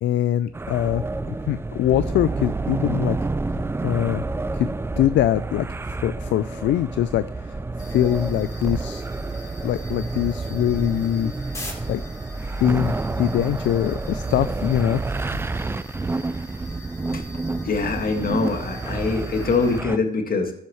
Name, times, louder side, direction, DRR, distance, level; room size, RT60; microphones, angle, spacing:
voice 1, 0.0-3.2 3.8-4.2 4.5-7.6 7.9-9.0 9.6-11.3 11.9-12.0 12.6-15.0, left 12 dB, 70° left, 15 dB, 0.4 m, -23 dB
sound 1, 0.5-20.0, right 3 dB, 10° right, 0.4 m, -29 dB
sound 2, 7.8-19.8, left 2 dB, 15° left, 2.9 m, -44 dB
voice 2, 17.6-20.5, left 4 dB, 45° left, 4 dB, 1.9 m, -24 dB
14.0 x 7.4 x 3.1 m, 0.75 s
cardioid pair, 90°, 20 cm